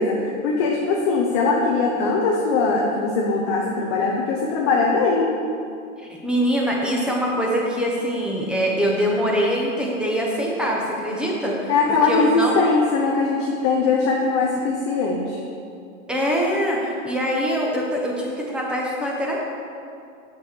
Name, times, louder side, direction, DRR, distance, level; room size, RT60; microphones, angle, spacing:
voice 1, 0.0-5.3 11.7-15.4, left 4 dB, 20° left, -1 dB, 0.4 m, -21 dB
voice 2, 6.0-12.5 16.1-19.4, equal, ahead, -3 dB, 0.8 m, -23 dB
7.4 x 6.9 x 4.4 m, 2.5 s
hypercardioid pair, 140°, 41 cm